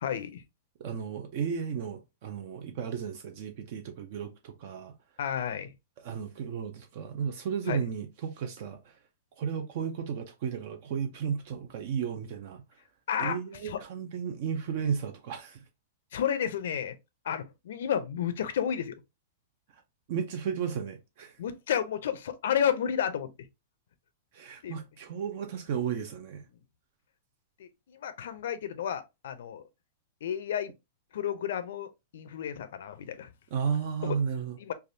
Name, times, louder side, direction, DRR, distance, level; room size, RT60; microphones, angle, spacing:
voice 1, 0.0-0.4 5.2-5.7 7.7-7.8 13.1-13.4 13.6-13.8 16.1-16.9 17.2-19.0 21.4-23.3 24.6-24.8 27.6-29.6 30.2-30.7 31.1-33.3 34.0-34.2 34.6-34.7, left 9 dB, 75° left, 0.5 m, -31 dB
voice 2, 0.8-4.9 6.0-8.9 9.4-12.6 13.2-15.6 20.1-21.4 24.3-26.4 33.5-34.6, right 7 dB, 50° right, 0.4 m, -34 dB
3.4 x 2.2 x 2.6 m
supercardioid pair, 150°, 0 cm